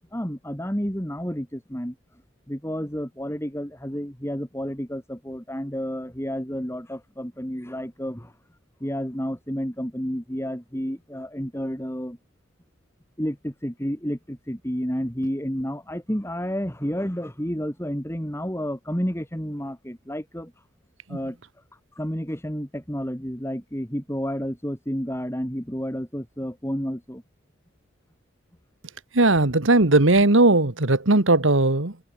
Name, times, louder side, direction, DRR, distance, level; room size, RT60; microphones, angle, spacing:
voice 1, 0.1-2.0 2.5-8.3 8.8-12.2 13.2-20.5 21.1-21.4 21.9-27.2, equal, 10° left, 3.1 m, -30 dB
voice 2, 29.1-31.9, right 2 dB, 70° right, 1.7 m, -18 dB
head